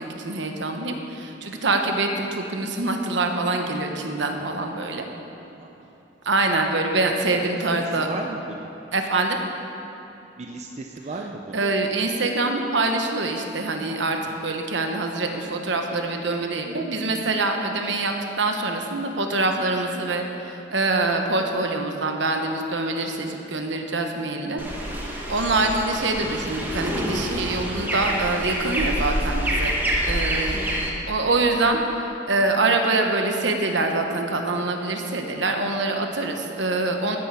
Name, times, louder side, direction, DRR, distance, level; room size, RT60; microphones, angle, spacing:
voice 1, 0.0-5.0 6.2-8.1 8.9-9.4 11.5-24.6 25.3-29.7 30.1-30.6 31.1-37.2, right 2 dB, 70° right, 3 dB, 1.2 m, -25 dB
voice 2, 5.6-5.9 8.0-8.7 10.4-11.6 14.3-14.4 30.3-30.5, right 3 dB, 35° right, 2 dB, 0.6 m, -36 dB
sound 1, 24.6-30.9, equal, 10° right, 1.4 m, -27 dB
13.5 x 10.0 x 4.8 m, 2.8 s
head